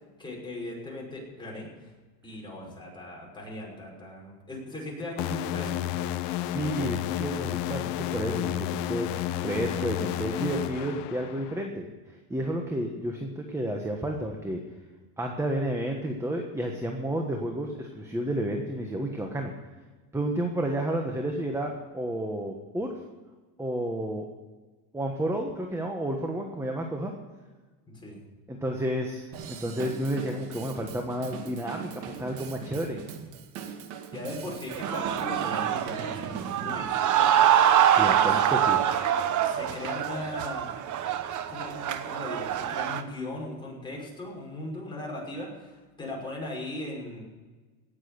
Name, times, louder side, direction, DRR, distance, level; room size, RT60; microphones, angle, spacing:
voice 1, 0.2-1.9 2.2-5.9 27.9-28.2 34.1-37.5 38.2-38.3 39.4-40.7 41.5-47.2, left 1 dB, 10° left, -3 dB, 5.7 m, -38 dB
sound 1, 5.2-11.7, left 13 dB, 60° left, 0.8 m, -31 dB
voice 2, 6.4-11.9 12.3-14.6 15.2-19.5 20.1-22.9 23.6-24.2 24.9-27.1 28.5-33.0 37.8-38.8, right 1 dB, 5° right, 2 dB, 1.4 m, -31 dB
Drum kit / Drum, 29.3-36.8, right 7 dB, 70° right, 2.1 m, -40 dB
sound 2, 34.7-43.0, right 10 dB, 40° right, 1.1 m, -25 dB
18.0 x 7.6 x 8.2 m, 1.3 s
cardioid pair, 135°, 44 cm